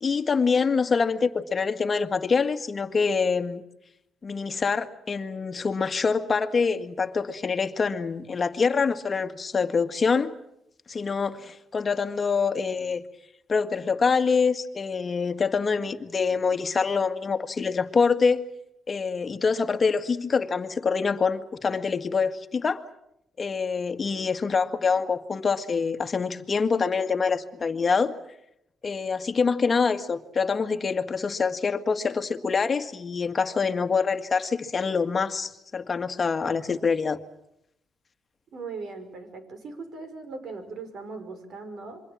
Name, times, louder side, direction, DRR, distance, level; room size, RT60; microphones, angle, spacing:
voice 1, 0.0-3.6 4.2-10.3 10.9-13.0 13.5-18.4 18.9-22.8 23.4-28.1 28.8-37.2, left 5 dB, 35° left, 1.9 m, -25 dB
voice 2, 38.5-42.0, right 4 dB, 60° right, 5.7 m, -39 dB
27.0 x 23.5 x 7.4 m
cardioid pair, 90°, 0 cm